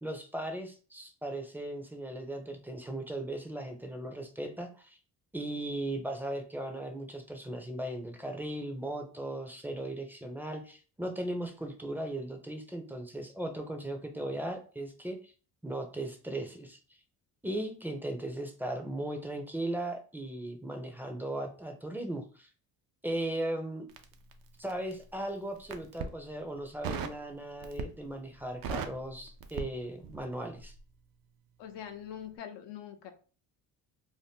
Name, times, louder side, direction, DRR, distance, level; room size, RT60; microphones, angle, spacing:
voice 1, 0.0-5.0 5.3-15.3 15.6-16.8 17.4-22.5 23.0-23.8 24.6-30.7, right 1 dB, 5° right, 4 dB, 0.5 m, -37 dB
Crackle, 23.9-25.0 25.6-26.2 26.8-27.2 27.6-28.1 28.4-30.3 30.6-30.8, right 6 dB, 55° right, 0.6 m, -38 dB
voice 2, 31.6-33.1, left 9 dB, 75° left, 7 dB, 0.7 m, -43 dB
2.7 x 2.1 x 3.5 m, 0.38 s
supercardioid pair, 85°, 43 cm